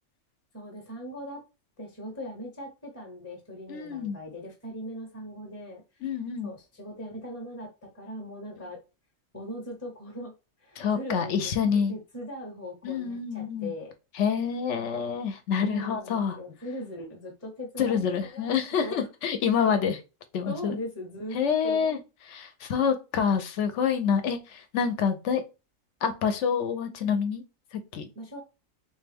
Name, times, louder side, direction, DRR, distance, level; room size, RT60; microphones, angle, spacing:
voice 1, 0.5-1.4 1.8-5.8 6.4-8.8 9.3-10.3 10.6-11.5 11.9-13.9 15.6-19.1 19.6-19.7 20.4-21.4 21.6-21.9 28.1-28.4, equal, 15° left, 0.8 m, -39 dB
voice 2, 3.7-4.2 6.0-6.5 10.8-11.9 12.8-13.7 14.2-16.4 17.8-20.0 20.3-20.8 21.3-22.0 22.3-25.4 26.0-27.4 27.7-28.1, left 7 dB, 65° left, 0.9 m, -27 dB
3.3 x 2.6 x 3.4 m
omnidirectional pair, 1.4 m